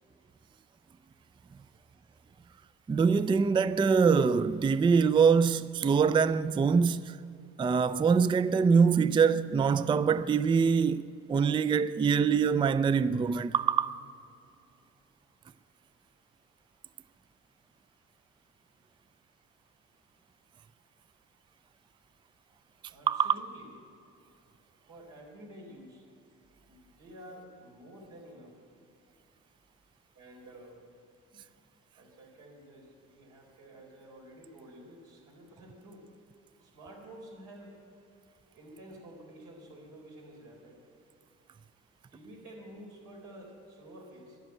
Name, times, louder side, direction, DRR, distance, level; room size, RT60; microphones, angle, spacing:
voice 1, 2.9-7.2 7.6-11.0 11.3-14.0 23.1-23.3, right 6 dB, 15° right, 0.3 m, -24 dB
voice 2, 22.9-23.7 24.9-26.0 26.7-28.6 30.1-30.9 31.3-31.4 31.9-36.1 36.6-37.8 38.5-40.8 42.1-44.4, right 1 dB, 90° right, 4.0 m, -50 dB
12.0 x 11.0 x 9.1 m
cardioid pair, 90°, 30 cm